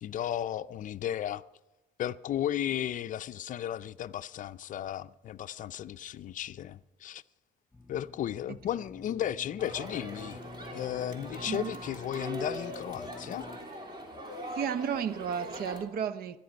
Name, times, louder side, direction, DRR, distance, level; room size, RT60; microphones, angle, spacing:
voice 1, 0.0-1.4 2.0-7.2 7.9-10.4 10.7-13.5, left 11 dB, 50° left, 0.5 m, -34 dB
sound 1, 7.7-13.6, left 2 dB, 5° left, 3.4 m, -49 dB
Crowd, 9.6-15.8, equal, 25° right, 3.2 m, -41 dB
voice 2, 14.5-16.4, right 7 dB, 65° right, 0.9 m, -33 dB
23.0 x 10.5 x 5.2 m
cardioid pair, 110°, 17 cm